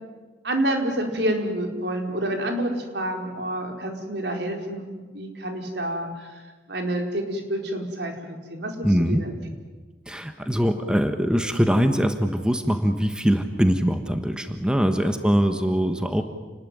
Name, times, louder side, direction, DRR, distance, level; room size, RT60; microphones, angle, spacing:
voice 1, 0.4-6.4 6.7-9.3 15.0-15.3, right 1 dB, 70° right, 3 dB, 4.6 m, -28 dB
voice 2, 8.8-9.2 10.1-16.2, equal, 5° right, 6 dB, 1.4 m, -22 dB
29.0 x 20.0 x 9.4 m, 1.3 s
head